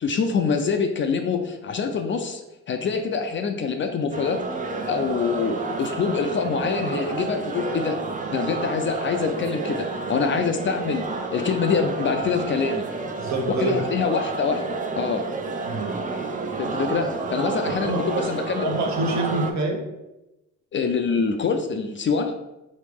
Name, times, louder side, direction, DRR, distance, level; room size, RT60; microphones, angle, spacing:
voice 1, 0.0-2.4 2.7-4.4 4.9-8.0 8.3-11.0 11.3-12.8 13.6-14.6 15.0-15.2 16.6-18.7 20.7-22.3, left 5 dB, 40° left, 5 dB, 0.4 m, -25 dB
sound 1, 4.1-19.5, right 4 dB, 25° right, 0.5 m, -30 dB
voice 2, 13.2-13.7 15.6-15.9 17.6-18.3 18.6-19.8, right 2 dB, 65° right, 2 dB, 1.0 m, -26 dB
3.6 x 3.1 x 3.5 m, 0.95 s
cardioid pair, 90°, 30 cm